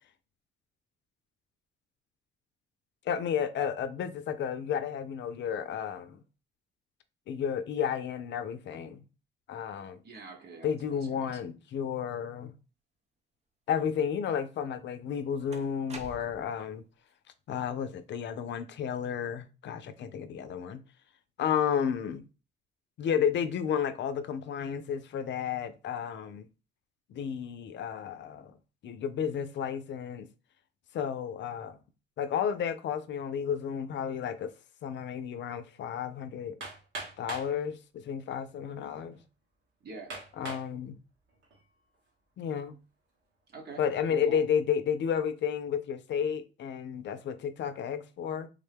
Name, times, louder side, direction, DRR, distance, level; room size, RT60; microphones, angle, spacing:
voice 1, 3.1-6.2 7.3-9.0 9.5-10.0 10.6-12.5 13.7-16.8 17.5-20.8 21.4-22.2 23.0-26.5 27.1-28.6 28.8-30.3 30.9-31.8 32.2-34.5 34.8-36.6 37.2-39.2 40.4-41.0 42.4-42.8 43.8-48.5, left 8 dB, 65° left, 0.5 m, -32 dB
voice 2, 10.0-11.4 39.8-40.2 43.5-44.4, right 3 dB, 55° right, 1.1 m, -46 dB
sound 1, 14.6-14.7 15.5-16.6, right 3 dB, 35° right, 0.6 m, -46 dB
Hammer, 36.6-37.5 38.4-38.5 39.1-39.2 40.1-40.7 41.3-41.7, right 3 dB, 75° right, 1.3 m, -41 dB
3.5 x 2.2 x 3.4 m
cardioid pair, 90°, 20 cm